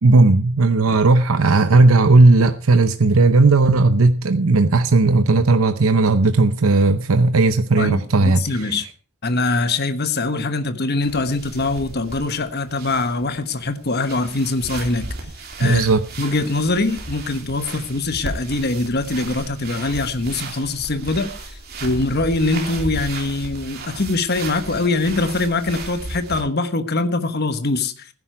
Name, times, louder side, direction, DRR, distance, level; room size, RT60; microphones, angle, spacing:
voice 1, 0.0-8.7 15.6-16.0, right 3 dB, 90° right, 0.7 m, -15 dB
voice 2, 7.8-8.9 9.2-15.1 15.6-15.9 16.2-21.3 21.8-27.9, left 3 dB, 50° left, 1.2 m, -23 dB
sound 1, 11.0-26.4, right 2 dB, 50° right, 3.3 m, -35 dB
15.5 x 9.9 x 4.6 m
head